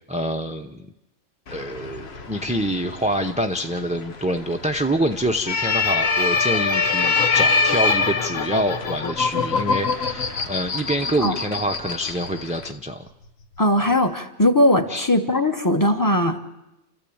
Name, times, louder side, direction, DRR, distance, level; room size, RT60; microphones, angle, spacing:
voice 1, 0.1-0.9 1.5-13.1 14.9-15.1, equal, 10° right, 4 dB, 0.5 m, -26 dB
sound 1, 1.5-12.7, left 4 dB, 50° left, 1.4 m, -25 dB
sound 2, 5.8-12.8 13.1-13.9, left 5 dB, 70° left, 1.6 m, -28 dB
voice 2, 13.6-16.4, left 1 dB, 15° left, 8 dB, 1.2 m, -19 dB
29.0 x 13.5 x 8.7 m, 0.95 s
omnidirectional pair, 1.4 m